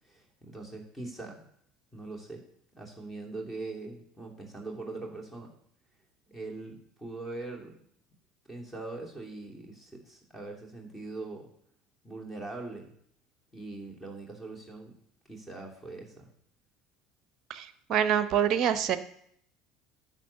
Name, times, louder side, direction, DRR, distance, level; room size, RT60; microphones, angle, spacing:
voice 1, 0.0-1.5 1.9-2.5 2.8-5.5 6.3-7.8 8.5-11.5 12.0-12.9 13.5-14.9 15.3-16.3, right 2 dB, 5° left, 1 dB, 2.9 m, -41 dB
voice 2, 17.5-19.0, right 9 dB, 40° right, 12 dB, 0.8 m, -26 dB
10.5 x 6.1 x 7.1 m, 0.69 s
figure-of-eight pair, 65°, 0 cm